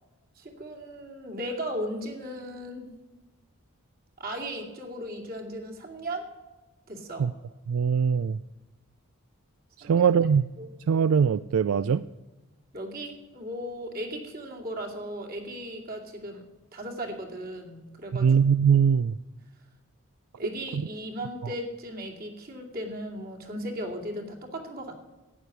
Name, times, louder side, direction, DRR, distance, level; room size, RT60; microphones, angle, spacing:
voice 1, 0.4-2.9 4.2-6.3 6.9-7.3 9.8-10.1 10.6-10.7 12.7-16.4 16.7-18.4 18.7-18.9 20.4-24.9, equal, 40° right, 1 dB, 2.5 m, -36 dB
voice 2, 7.7-8.4 9.8-10.5 10.9-12.0 18.2-19.2 20.7-20.8, right 7 dB, 75° right, 15 dB, 0.3 m, -21 dB
11.0 x 9.3 x 8.3 m, 1.1 s
head